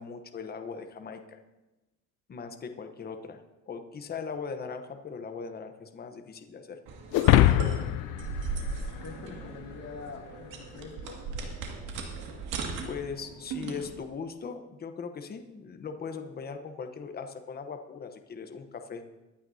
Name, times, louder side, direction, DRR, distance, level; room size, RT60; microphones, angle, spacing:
voice 1, 0.0-1.4 2.3-6.8 12.8-19.0, left 5 dB, 30° left, 6 dB, 0.9 m, -39 dB
sound 1, 6.9-14.0, right 4 dB, 85° right, 2.1 m, -38 dB
sound 2, 7.1-9.6, left 14 dB, 80° left, 0.5 m, -23 dB
voice 2, 7.9-8.5 9.0-11.2, left 4 dB, 55° left, 1 dB, 2.3 m, -45 dB
23.0 x 9.0 x 2.8 m, 1.1 s
cardioid pair, 130°, 32 cm